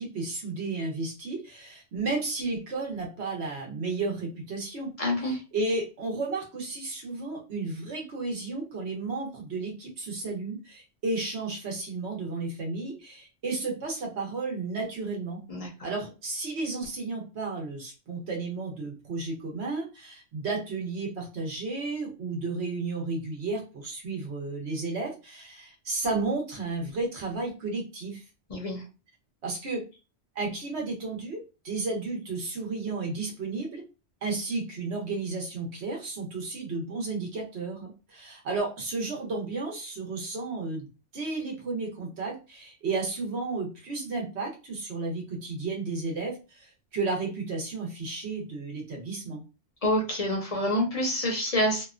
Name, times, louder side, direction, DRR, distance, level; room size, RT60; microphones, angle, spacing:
voice 1, 0.0-15.4 15.8-28.2 29.4-29.8 30.3-33.8 34.2-40.9 41.1-49.4, right 3 dB, 65° right, 0 dB, 1.2 m, -33 dB
voice 2, 5.0-5.4 15.5-15.7 28.5-28.8 49.8-51.8, left 1 dB, 40° left, -1 dB, 0.7 m, -27 dB
2.8 x 2.2 x 2.4 m, 0.30 s
omnidirectional pair, 1.2 m